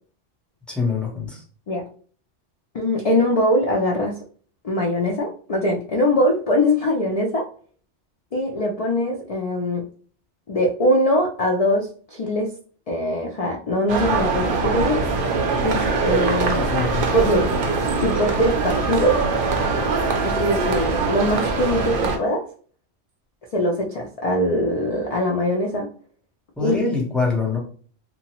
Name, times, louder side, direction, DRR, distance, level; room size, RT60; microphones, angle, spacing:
voice 1, 0.7-1.4 16.5-17.1 26.6-27.6, left 4 dB, ahead, -3 dB, 0.6 m, -24 dB
voice 2, 2.7-4.2 4.6-7.5 8.3-9.8 10.5-12.5 12.9-15.1 15.6-16.7 17.1-19.2 20.2-22.5 23.5-25.9 26.6-26.7, left 1 dB, 60° left, 0 dB, 0.3 m, -22 dB
sound 1, 13.9-22.2, right 4 dB, 60° right, 0.6 m, -22 dB
2.8 x 2.2 x 2.9 m, 0.44 s
omnidirectional pair, 1.2 m